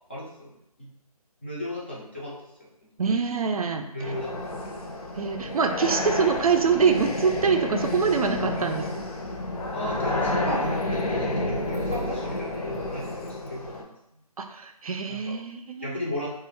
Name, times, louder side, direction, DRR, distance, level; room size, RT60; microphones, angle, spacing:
voice 1, 0.1-0.9 1.4-2.3 3.9-4.7 8.5-8.9 9.7-14.0 15.1-15.4 15.8-16.3, left 1 dB, 20° left, -6 dB, 0.4 m, -35 dB
voice 2, 3.0-3.9 5.2-8.9 14.4-15.9, right 5 dB, 65° right, 5 dB, 0.4 m, -24 dB
sound 1, 4.0-13.8, left 1 dB, 70° left, 0.6 m, -30 dB
2.4 x 2.4 x 3.1 m, 0.81 s
figure-of-eight pair, 155°, 20 cm